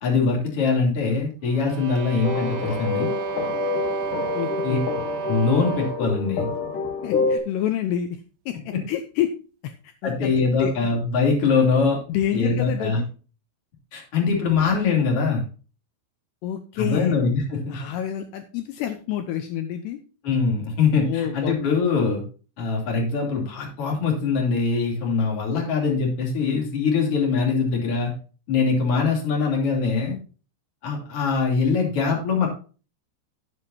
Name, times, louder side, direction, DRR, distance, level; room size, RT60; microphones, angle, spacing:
voice 1, 0.0-3.1 4.6-4.8 5.2-6.5 10.0-12.0 12.3-13.0 13.9-15.4 16.8-17.8 20.2-22.2 22.6-28.1 28.5-30.2 30.8-32.5, left 4 dB, 35° left, -1 dB, 3.2 m, -22 dB
sound 1, 1.4-6.2, right 11 dB, 85° right, 2.3 m, -32 dB
sound 2, 2.2-7.4, left 5 dB, 65° left, 2.2 m, -27 dB
voice 2, 4.3-4.8 7.0-8.2 8.5-9.3 9.6-10.3 10.6-11.0 12.1-13.1 16.4-17.1 17.7-20.0 21.1-21.6, left 10 dB, 85° left, 7 dB, 2.3 m, -28 dB
14.0 x 8.1 x 2.8 m, 0.36 s
omnidirectional pair, 5.8 m